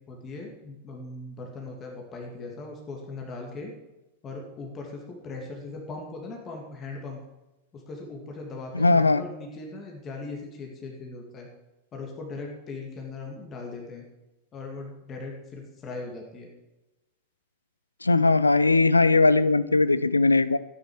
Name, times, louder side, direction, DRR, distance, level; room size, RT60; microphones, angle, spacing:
voice 1, 0.0-3.7 4.2-7.2 7.7-11.5 11.9-14.0 14.5-16.5, left 3 dB, 25° left, 0 dB, 2.3 m, -39 dB
voice 2, 8.7-9.2 18.0-20.6, left 3 dB, 80° left, 17 dB, 0.5 m, -19 dB
14.0 x 9.5 x 5.0 m, 1.0 s
figure-of-eight pair, 90°, 0 cm